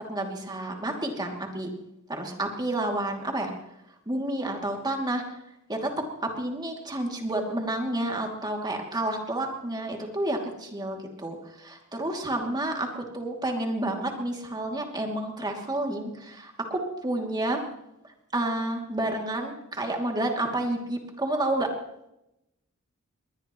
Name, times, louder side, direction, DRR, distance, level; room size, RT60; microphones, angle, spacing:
voice 1, 0.1-1.7 2.1-3.5 4.1-5.2 5.7-17.6 18.3-21.7, right 1 dB, 20° right, 1 dB, 2.7 m, -30 dB
21.5 x 20.0 x 3.1 m, 0.85 s
head